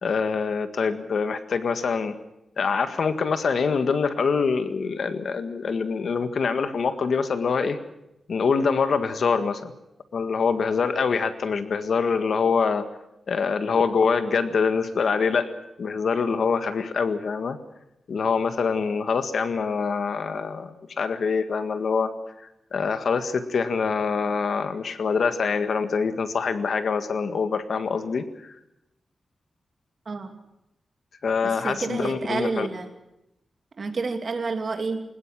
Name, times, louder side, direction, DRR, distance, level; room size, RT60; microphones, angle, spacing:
voice 1, 0.0-2.2 2.6-7.8 8.3-9.7 10.1-12.8 13.3-15.5 15.8-17.6 18.1-22.1 22.7-28.5 31.2-32.7, left 5 dB, 65° left, 10 dB, 1.7 m, -25 dB
voice 2, 30.1-30.4 31.4-32.9 33.8-35.0, right 4 dB, 45° right, 6 dB, 2.8 m, -29 dB
21.5 x 20.5 x 7.5 m, 0.88 s
wide cardioid pair, 150°, 0 cm